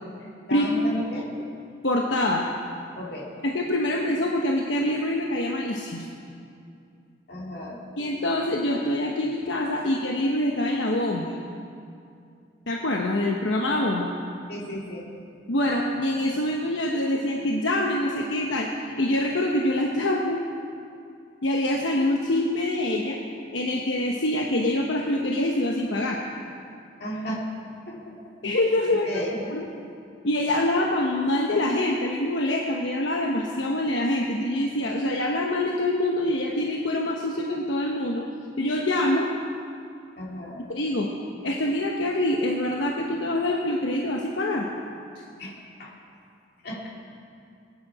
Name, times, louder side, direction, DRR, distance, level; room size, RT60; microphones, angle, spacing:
voice 1, 0.5-1.3 3.0-3.3 7.3-7.8 14.5-15.0 27.0-27.4 27.9-28.3 28.9-29.4 40.2-40.6 45.4-45.9 46.6-46.9, equal, 55° left, -3 dB, 2.7 m, -34 dB
voice 2, 1.8-2.5 3.4-6.1 8.0-11.4 12.7-14.1 15.5-20.4 21.4-23.2 23.5-26.2 28.4-29.2 29.5-29.7 30.2-38.2 38.6-39.3 40.7-41.1 41.4-44.7, left 1 dB, 80° left, -1 dB, 1.0 m, -25 dB
21.0 x 9.6 x 4.8 m, 2.4 s
head